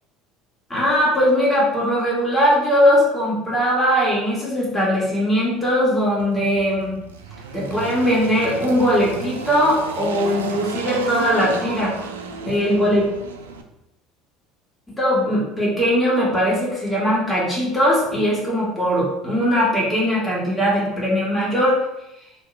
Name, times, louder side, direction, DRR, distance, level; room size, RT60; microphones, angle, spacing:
voice 1, 0.7-6.9 7.5-11.9 12.4-13.1 15.0-21.8, equal, 10° left, -6 dB, 1.4 m, -20 dB
Engine, 6.2-13.6, right 5 dB, 85° right, 0.3 m, -32 dB
2.9 x 2.4 x 3.1 m, 0.87 s
hypercardioid pair, 70°, 0 cm